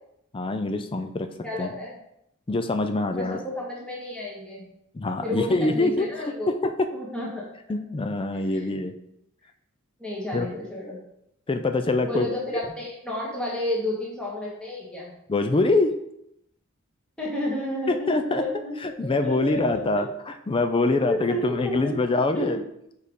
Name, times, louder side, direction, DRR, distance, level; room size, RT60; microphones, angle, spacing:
voice 1, 0.3-1.3 1.6-1.7 2.5-3.4 4.9-6.1 6.5-6.9 7.7-8.9 10.3-10.5 11.5-12.3 15.3-15.9 17.9-18.4 18.8-22.6, left 2 dB, 25° left, 8 dB, 0.4 m, -24 dB
voice 2, 1.4-2.0 3.2-4.7 5.2-6.5 6.9-7.4 8.5-8.6 10.0-11.0 12.0-15.1 17.2-18.7 19.0-19.8 20.8-21.9 22.3-22.6, left 1 dB, 5° left, -5 dB, 1.5 m, -31 dB
4.8 x 4.7 x 5.2 m, 0.78 s
head